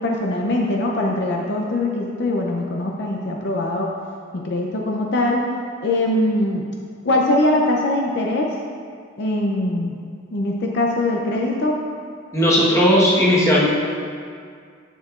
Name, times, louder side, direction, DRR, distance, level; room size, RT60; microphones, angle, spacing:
voice 1, 0.0-3.9 4.3-5.5 5.8-6.7 7.0-8.5 9.2-10.0 10.3-11.8, left 1 dB, 60° left, -1 dB, 0.5 m, -22 dB
voice 2, 12.3-13.7, equal, 15° left, -7 dB, 1.3 m, -16 dB
10.0 x 6.6 x 2.5 m, 2.2 s
head